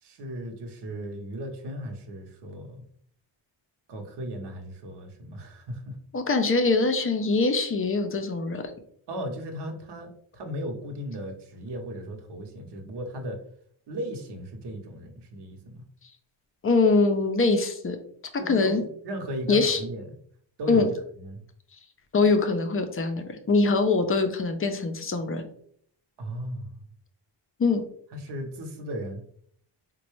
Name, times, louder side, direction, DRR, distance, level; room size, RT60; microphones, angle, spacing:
voice 1, 0.0-2.8 3.9-6.0 9.1-13.4 13.9-15.8 18.4-20.1 20.6-20.9 21.2-21.4 26.2-26.7 28.1-29.2, equal, 60° right, 4 dB, 0.9 m, -36 dB
voice 2, 6.1-8.6 16.6-18.0 18.5-18.8 19.5-19.8 20.7-20.9 22.1-25.4 27.6-27.8, left 3 dB, 30° left, 6 dB, 0.4 m, -23 dB
4.0 x 2.2 x 3.1 m, 0.63 s
cardioid pair, 125°, 46 cm